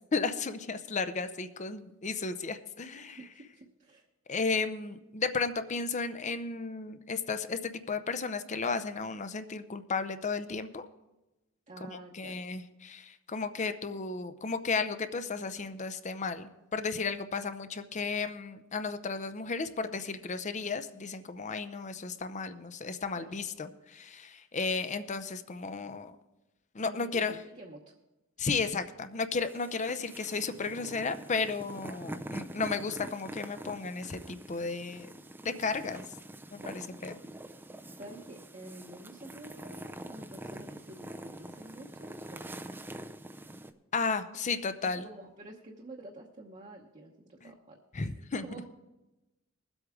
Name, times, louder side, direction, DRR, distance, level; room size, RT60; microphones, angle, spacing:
voice 1, 0.1-3.2 4.3-10.9 11.9-26.1 26.7-27.4 28.4-35.1 35.4-36.0 36.5-37.1 43.9-45.1 47.4-47.5 47.9-48.5, left 4 dB, 35° left, 10 dB, 0.6 m, -34 dB
voice 2, 3.2-4.1 11.7-12.4 23.2-23.3 26.8-27.9 36.6-36.8 38.0-42.7 44.8-48.6, right 1 dB, 35° right, -1 dB, 1.0 m, -49 dB
sound 1, 29.5-43.7, right 1 dB, 10° right, 0.5 m, -45 dB
21.0 x 8.0 x 3.6 m, 1.0 s
head